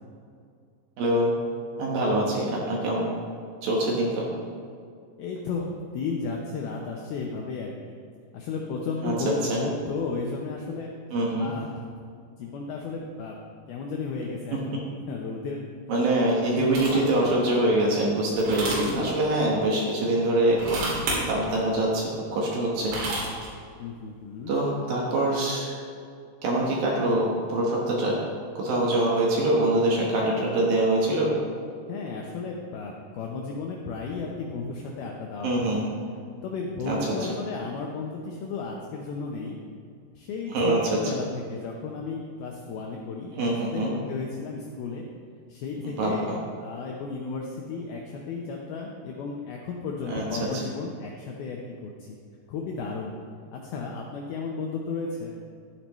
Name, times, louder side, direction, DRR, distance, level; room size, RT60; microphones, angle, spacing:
voice 1, 1.0-1.4 1.8-3.1 3.6-4.3 9.0-9.6 11.1-11.5 14.5-14.6 15.9-20.8 21.3-22.9 24.5-25.7 26.4-28.2 28.6-31.3 35.4-35.9 36.9-37.3 40.5-40.8 43.4-43.9 45.8-46.4 50.0-50.6, right 1 dB, 65° right, -3 dB, 2.6 m, -24 dB
voice 2, 5.2-5.7 5.9-7.9 8.3-10.9 11.4-11.8 12.4-13.4 13.7-14.6 15.1-15.7 16.3-17.3 18.7-19.2 23.8-24.6 31.9-35.8 36.4-39.6 40.2-45.1 45.5-46.3 46.6-52.2 52.5-53.2 53.5-55.3, left 4 dB, 80° left, 0 dB, 2.2 m, -34 dB
sound 1, 16.7-17.1 18.4-18.9 20.5-21.2 22.6-23.5, right 2 dB, 85° right, 4.9 m, -30 dB
12.0 x 9.8 x 3.1 m, 2.3 s
omnidirectional pair, 5.3 m